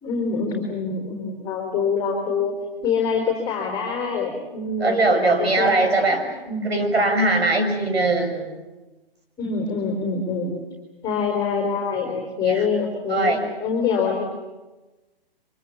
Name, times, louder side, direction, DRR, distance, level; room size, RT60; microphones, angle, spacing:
voice 1, 0.0-2.5 2.8-7.0 9.4-10.6 11.0-13.3 13.6-14.2, left 5 dB, 10° left, 2 dB, 3.8 m, -25 dB
voice 2, 4.8-6.2 6.6-8.5 12.4-12.6 13.1-13.4, right 2 dB, 90° right, 6 dB, 6.4 m, -20 dB
24.5 x 23.0 x 8.6 m, 1.1 s
hypercardioid pair, 155°, 30 cm